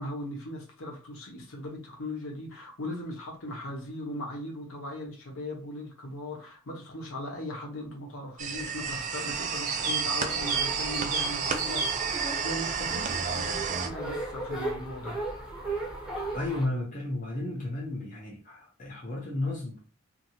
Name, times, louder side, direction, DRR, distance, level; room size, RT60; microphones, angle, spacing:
voice 1, 0.0-15.2, left 1 dB, 70° left, 1.0 m, -38 dB
sound 1, 8.4-13.9, right 6 dB, 35° right, 0.3 m, -31 dB
sound 2, 9.5-11.9, right 4 dB, 70° right, 0.8 m, -31 dB
sound 3, 10.3-16.7, right 2 dB, 5° right, 0.7 m, -37 dB
voice 2, 16.3-19.8, left 2 dB, 35° left, 0.7 m, -33 dB
2.7 x 2.7 x 2.8 m
head